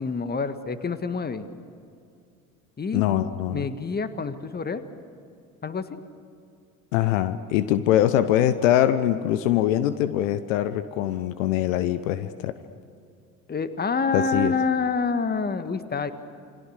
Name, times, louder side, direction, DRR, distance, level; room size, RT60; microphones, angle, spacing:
voice 1, 0.0-1.5 2.8-3.1 3.5-4.8 5.6-5.9 13.5-16.1, left 4 dB, 20° left, 11 dB, 1.7 m, -27 dB
voice 2, 2.9-3.7 6.9-12.5 14.1-14.5, left 12 dB, 65° left, 13 dB, 1.0 m, -23 dB
29.0 x 24.0 x 6.6 m, 2.5 s
figure-of-eight pair, 60°, 42 cm